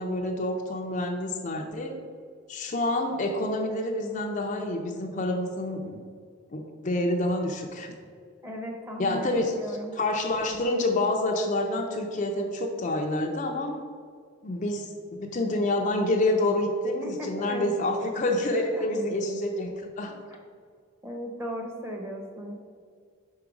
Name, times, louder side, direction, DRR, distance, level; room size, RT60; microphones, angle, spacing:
voice 1, 0.0-2.0 2.5-6.0 6.5-7.9 9.0-13.8 14.4-20.2, left 1 dB, 35° left, 3 dB, 0.4 m, -28 dB
voice 2, 8.4-9.9 17.0-17.7 18.7-18.8 21.0-22.5, equal, 10° right, 1 dB, 0.7 m, -36 dB
5.4 x 4.8 x 5.1 m, 2.1 s
head